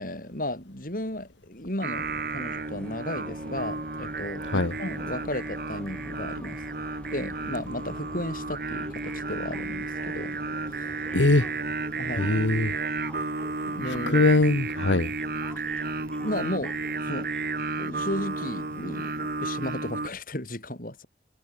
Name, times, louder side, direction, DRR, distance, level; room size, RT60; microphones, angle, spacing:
voice 1, 0.0-6.6 7.1-10.4 10.7-10.9 12.0-12.4 13.7-14.2 15.6-15.7 16.2-16.8 17.0-17.3 17.8-21.1, left 1 dB, 50° left, 5.7 m, -34 dB
Singing, 1.8-20.1, right 3 dB, 55° right, 2.5 m, -32 dB
sound 1, 1.9-19.7, equal, 5° left, 2.8 m, -47 dB
voice 2, 11.1-11.5 12.2-12.7 13.9-15.1, left 2 dB, 85° left, 1.3 m, -22 dB
head